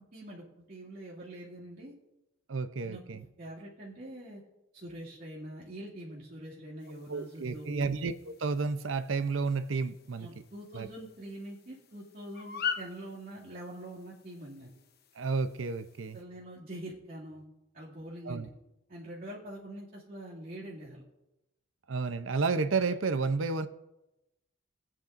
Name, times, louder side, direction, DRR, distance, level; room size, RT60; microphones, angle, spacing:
voice 1, 0.1-1.9 2.8-4.4 4.7-8.0 10.2-14.7 16.1-17.4 17.7-18.5 18.9-21.0, right 1 dB, 50° right, -7 dB, 2.5 m, -44 dB
voice 2, 2.5-3.2 7.1-8.1 8.4-10.3 10.7-10.9 15.2-16.2 18.3-18.5 21.9-23.7, right 4 dB, 80° right, 11 dB, 0.7 m, -31 dB
sound 1, 6.8-16.2, left 7 dB, 55° left, 0.9 m, -44 dB
21.0 x 8.7 x 2.6 m, 0.93 s
head